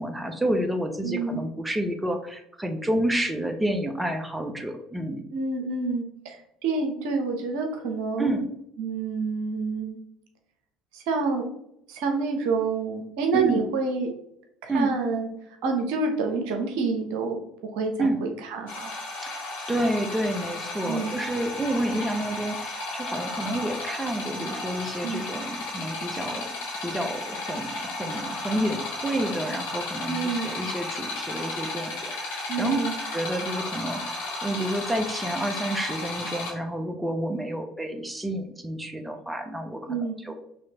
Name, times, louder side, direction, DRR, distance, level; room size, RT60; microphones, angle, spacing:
voice 1, 0.0-5.2 8.2-8.5 13.3-13.6 14.7-14.9 18.0-18.2 19.2-19.3 19.7-26.5 26.8-32.8 33.1-40.3, right 1 dB, 10° right, 5 dB, 0.8 m, -29 dB
voice 2, 1.0-1.4 5.3-8.4 8.8-10.0 10.9-11.5 11.9-14.1 14.6-15.3 15.6-17.4 17.7-18.8 20.9-21.2 25.0-25.2 30.1-30.5 32.5-33.0 39.9-40.2, right 4 dB, 65° right, 3 dB, 0.8 m, -28 dB
sound 1, 18.7-36.5, left 2 dB, 75° left, 1.7 m, -34 dB
6.1 x 3.0 x 2.9 m, 0.77 s
hypercardioid pair, 60°, 0 cm